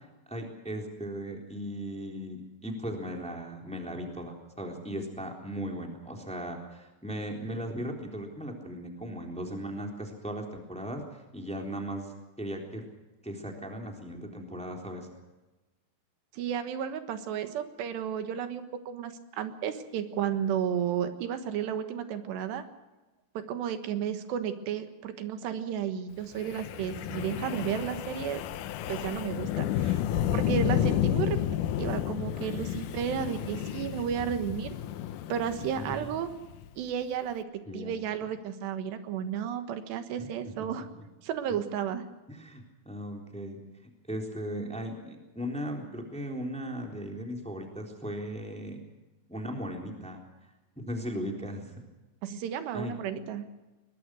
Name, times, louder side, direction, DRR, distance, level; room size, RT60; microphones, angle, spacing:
voice 1, 0.0-12.1 12.4-12.8 13.2-15.1 30.1-30.8 35.7-36.1 37.7-37.9 40.2-40.6 41.0-41.1 42.3-43.6 44.1-48.8 49.3-50.2 50.7-51.7 52.7-53.0, equal, ahead, 2 dB, 3.0 m, -37 dB
voice 2, 16.3-22.6 23.4-28.4 28.9-30.0 30.3-31.4 31.8-34.8 35.3-36.3 36.8-40.9 41.2-42.1 52.2-53.5, right 8 dB, 85° right, 9 dB, 3.6 m, -33 dB
Wind, 26.4-36.6, left 11 dB, 80° left, 1.8 m, -31 dB
22.5 x 20.5 x 6.2 m, 1.1 s
omnidirectional pair, 4.8 m